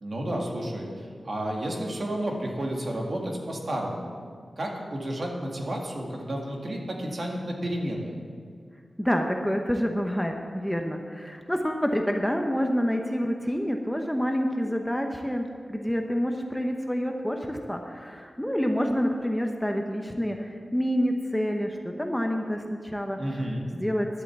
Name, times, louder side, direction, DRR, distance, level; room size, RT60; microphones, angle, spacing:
voice 1, 0.0-0.9 1.2-4.1 4.6-8.2 23.2-23.6, right 1 dB, 50° right, 0 dB, 1.9 m, -31 dB
voice 2, 9.0-24.1, equal, 5° left, 3 dB, 0.9 m, -28 dB
11.5 x 7.9 x 7.2 m, 2.1 s
wide cardioid pair, 95°, 0 cm